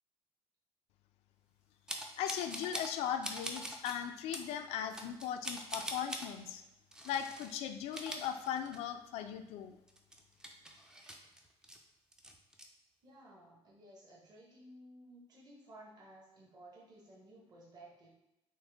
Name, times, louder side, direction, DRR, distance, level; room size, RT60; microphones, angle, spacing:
sound 1, 1.9-3.0 3.2-4.0 4.3-4.5 4.9-6.3 6.9-7.5 7.8-9.0 9.3-9.4 9.9-11.8 12.1-12.7, right 1 dB, 5° right, 0.4 m, -43 dB
voice 1, 2.2-6.6 7.0-9.8, left 9 dB, 90° left, 8 dB, 0.4 m, -38 dB
voice 2, 13.0-18.1, right 1 dB, 40° right, -4 dB, 1.0 m, -56 dB
6.3 x 2.1 x 3.4 m, 0.93 s
cardioid pair, 165°, 11 cm